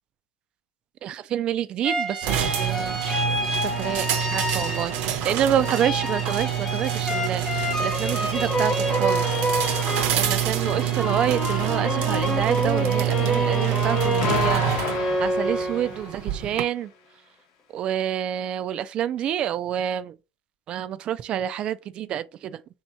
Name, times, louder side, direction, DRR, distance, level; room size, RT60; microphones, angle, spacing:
voice 1, 1.0-9.4 10.1-16.9 17.7-20.2 20.7-22.6, right 10 dB, 35° right, 0.4 m, -28 dB
sound 1, 1.8-5.3 5.6-16.2, equal, 15° left, 0.9 m, -28 dB
sound 2, 2.2-16.6, right 12 dB, 55° right, 0.8 m, -27 dB
Explosion, 14.2-16.4, left 8 dB, 75° left, 0.8 m, -32 dB
3.5 x 2.8 x 4.4 m
supercardioid pair, 140°, 3 cm